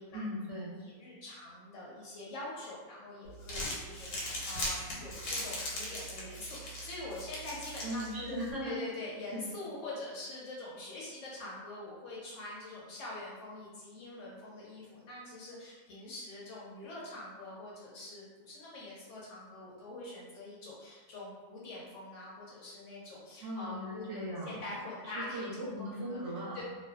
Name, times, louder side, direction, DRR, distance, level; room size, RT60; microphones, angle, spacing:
voice 1, 0.1-0.7 7.8-8.8 9.3-9.4 23.4-24.5 25.0-26.6, equal, 65° right, -6 dB, 0.8 m, -38 dB
voice 2, 0.7-24.1 24.4-26.2 26.5-26.6, left 2 dB, 65° left, -5 dB, 0.8 m, -44 dB
Crumpling crinkling, 3.3-8.5, left 1 dB, 90° left, 1.2 m, -39 dB
2.5 x 2.2 x 2.2 m, 1.3 s
omnidirectional pair, 1.5 m